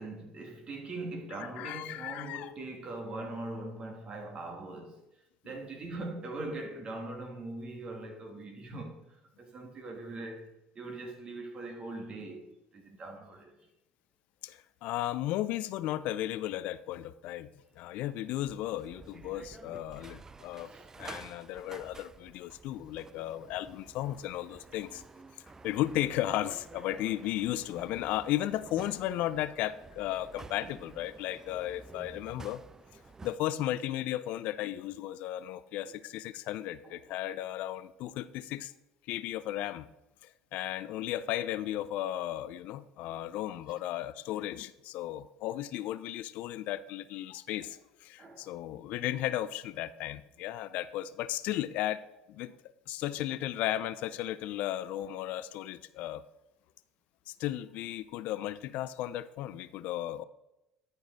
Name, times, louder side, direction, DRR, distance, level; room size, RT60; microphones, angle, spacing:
voice 1, 0.0-5.0 5.4-13.6 20.7-20.9 30.6-30.7 35.9-36.0 36.8-37.0 47.6-47.7 48.2-48.5, right 2 dB, 40° right, 2.2 m, -41 dB
voice 2, 1.4-2.5 14.4-17.5 17.8-20.7 21.0-25.0 25.6-32.6 33.2-38.7 39.1-39.9 40.2-52.0 52.3-52.5 52.9-56.2 57.3-60.2, left 13 dB, 70° left, 0.4 m, -35 dB
sound 1, 17.8-33.4, right 4 dB, 20° right, 0.4 m, -51 dB
11.0 x 5.3 x 4.0 m
supercardioid pair, 80°, 3 cm